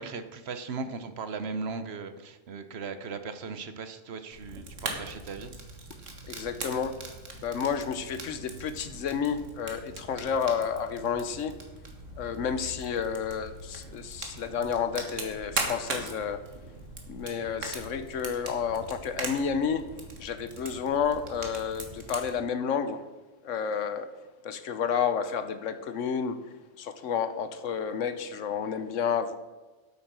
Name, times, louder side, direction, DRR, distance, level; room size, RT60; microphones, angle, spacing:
voice 1, 0.0-5.5, right 4 dB, 60° right, 11 dB, 1.0 m, -37 dB
Fire, 4.3-22.3, right 3 dB, 75° right, 1.9 m, -40 dB
voice 2, 6.3-6.9 7.3-11.6 12.2-16.4 17.1-19.8 20.2-23.0 23.4-24.1 24.4-26.4 26.8-29.4, left 7 dB, 80° left, 11 dB, 1.2 m, -30 dB
8.7 x 8.3 x 6.0 m, 1.2 s
omnidirectional pair, 1.3 m